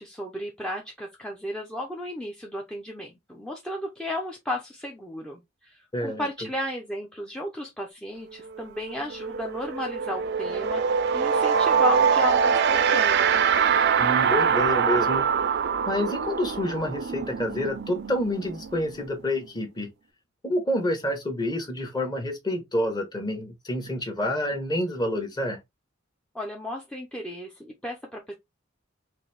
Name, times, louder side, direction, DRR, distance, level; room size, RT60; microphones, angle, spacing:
voice 1, 0.0-10.8 11.1-13.4 26.3-28.3, left 1 dB, 5° left, 0.5 m, -34 dB
voice 2, 5.9-6.3 14.0-15.3 15.9-19.9 20.4-25.6, left 1 dB, 20° left, 1.0 m, -28 dB
sound 1, 8.4-8.6 8.9-19.5, right 6 dB, 55° right, 0.4 m, -24 dB
3.9 x 2.6 x 3.3 m
head